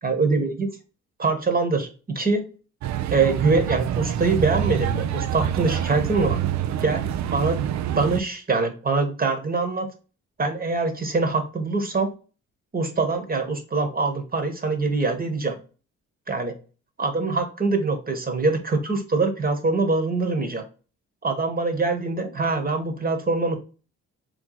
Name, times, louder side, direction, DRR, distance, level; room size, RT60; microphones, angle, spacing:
voice 1, 0.0-0.7 1.2-2.5 3.1-6.4 6.8-7.6 8.0-9.9 10.4-12.1 12.7-15.6 16.3-16.6 17.0-20.6 21.2-23.6, right 3 dB, 30° right, 5 dB, 1.2 m, -24 dB
sound 1, 2.8-8.2, right 10 dB, 65° right, 0.5 m, -26 dB
3.6 x 3.1 x 3.8 m, 0.35 s
cardioid pair, 90°, 30 cm